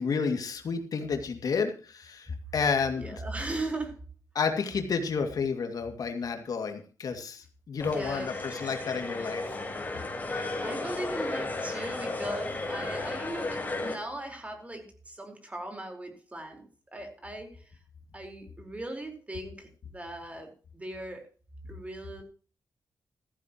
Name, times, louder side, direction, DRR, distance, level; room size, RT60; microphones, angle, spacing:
voice 1, 0.0-3.2 4.3-9.6, left 5 dB, 65° left, 6 dB, 2.4 m, -31 dB
voice 2, 3.0-4.0 7.9-8.4 10.2-16.7 16.9-17.6 18.1-21.3 21.7-22.2, right 1 dB, 20° right, 5 dB, 4.4 m, -38 dB
sound 1, 7.8-13.9, left 2 dB, 25° left, 4.6 m, -34 dB
15.0 x 14.5 x 3.1 m, 0.35 s
cardioid pair, 100°, 7 cm